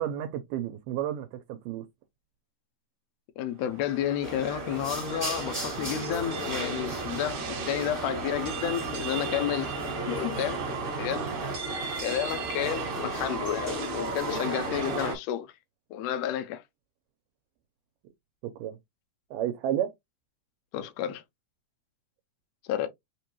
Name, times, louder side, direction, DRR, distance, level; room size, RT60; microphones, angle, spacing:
voice 1, 0.0-1.8 18.6-18.8 19.3-19.9, right 11 dB, 85° right, 2.2 m, -31 dB
voice 2, 3.4-9.7 10.1-10.6 11.0-11.3 12.0-15.5 15.9-16.6 20.7-21.2 22.7-22.9, left 10 dB, 80° left, 1.5 m, -31 dB
sound 1, 3.6-15.2, right 6 dB, 55° right, 1.7 m, -35 dB
sound 2, 4.2-15.1, left 2 dB, 30° right, 0.8 m, -37 dB
5.0 x 2.2 x 3.0 m
omnidirectional pair, 3.8 m